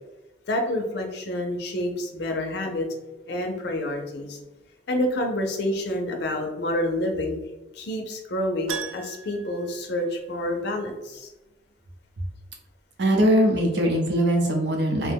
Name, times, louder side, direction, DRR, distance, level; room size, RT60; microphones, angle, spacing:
voice 1, 0.5-2.9 3.3-4.4 4.9-7.4 7.7-11.3, left 1 dB, 55° left, 3 dB, 0.5 m, -28 dB
Keyboard (musical), 8.7-10.7 11.0-11.1 13.8-13.9 14.1-14.2, right 6 dB, 85° right, 0.3 m, -38 dB
voice 2, 13.0-15.1, right 1 dB, 60° right, 1 dB, 0.7 m, -21 dB
2.8 x 2.1 x 3.4 m, 1.0 s
head